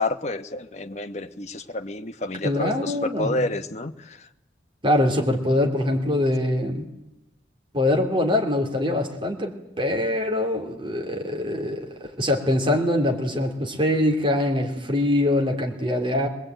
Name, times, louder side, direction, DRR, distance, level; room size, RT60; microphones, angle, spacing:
voice 1, 0.0-4.3, left 2 dB, 35° left, 7 dB, 1.1 m, -29 dB
voice 2, 2.4-3.4 4.8-6.9 7.7-16.3, left 1 dB, 25° right, 2 dB, 3.2 m, -23 dB
23.5 x 20.5 x 9.1 m, 0.89 s
head